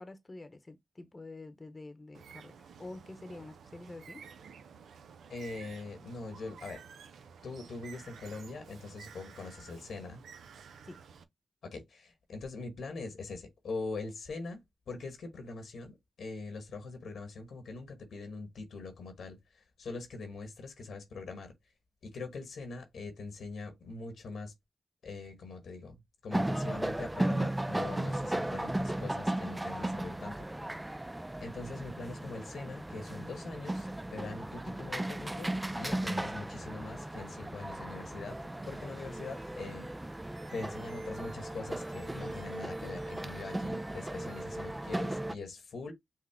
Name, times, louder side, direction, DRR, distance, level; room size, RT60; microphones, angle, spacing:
voice 1, 0.0-4.2 10.8-11.0, left 2 dB, 35° left, 0.9 m, -47 dB
Bird, 2.1-11.2, right 6 dB, 85° right, 0.5 m, -52 dB
voice 2, 5.3-6.8 7.4-10.2 11.6-21.5 22.0-24.5 25.0-31.0 31.4-38.4 38.7-39.9 40.5-45.9, left 3 dB, 80° left, 1.2 m, -43 dB
sound 1, 26.3-45.3, right 1 dB, 15° right, 0.3 m, -36 dB
sound 2, 38.3-44.6, right 2 dB, 65° right, 1.6 m, -55 dB
5.9 x 2.1 x 3.5 m
cardioid pair, 50°, 0 cm